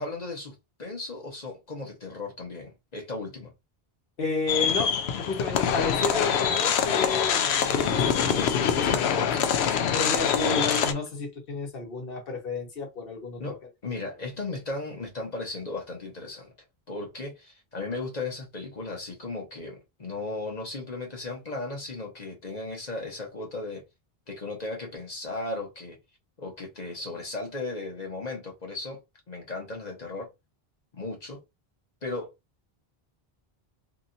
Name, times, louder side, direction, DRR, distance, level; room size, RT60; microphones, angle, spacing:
voice 1, 0.0-3.5 8.1-8.4 9.1-9.6 10.4-11.0 13.4-16.5 16.9-23.9 24.3-26.0 26.4-29.0 29.3-30.3 30.9-31.4 32.0-32.3, left 2 dB, 45° left, 1.0 m, -36 dB
voice 2, 4.2-13.6, left 3 dB, 65° left, 1.2 m, -32 dB
sound 1, 4.5-10.9, left 7 dB, 85° left, 0.8 m, -25 dB
2.9 x 2.7 x 2.5 m
omnidirectional pair, 1.0 m